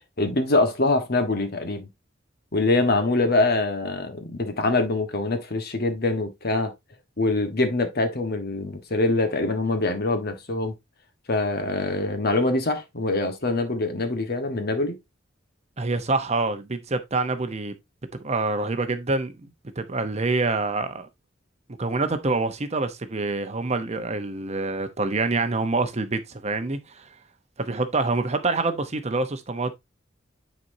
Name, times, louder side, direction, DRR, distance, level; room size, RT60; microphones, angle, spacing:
voice 1, 0.2-1.9 2.5-6.7 7.2-10.7 11.3-15.0, left 2 dB, 55° left, 1.3 m, -24 dB
voice 2, 15.8-17.7 18.2-21.1 21.7-27.1 27.6-29.7, right 3 dB, 35° right, 0.8 m, -26 dB
9.4 x 4.3 x 2.7 m
head